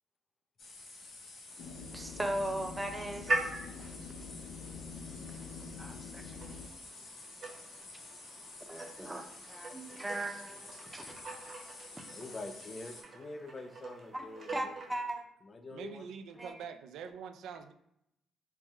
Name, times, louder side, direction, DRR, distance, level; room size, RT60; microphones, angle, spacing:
sound 1, 0.6-13.0, left 3 dB, 60° left, 1.3 m, -50 dB
sound 2, 1.5-15.1, right 2 dB, 60° right, 1.4 m, -43 dB
sound 3, 1.6-6.7, left 5 dB, 90° left, 0.4 m, -46 dB
voice 1, 1.9-4.0 5.3-5.4 5.8-6.6 8.7-11.2 12.0-12.2 14.1-14.3 14.5-15.2 16.4-16.5, right 1 dB, 10° right, 4 dB, 0.6 m, -39 dB
voice 2, 9.9-10.3 12.1-14.7 15.4-16.1, left 2 dB, 35° left, 7 dB, 0.5 m, -46 dB
voice 3, 15.7-17.7, right 7 dB, 85° right, 7 dB, 0.3 m, -45 dB
4.5 x 2.1 x 3.4 m, 0.79 s
cardioid pair, 90°, 0 cm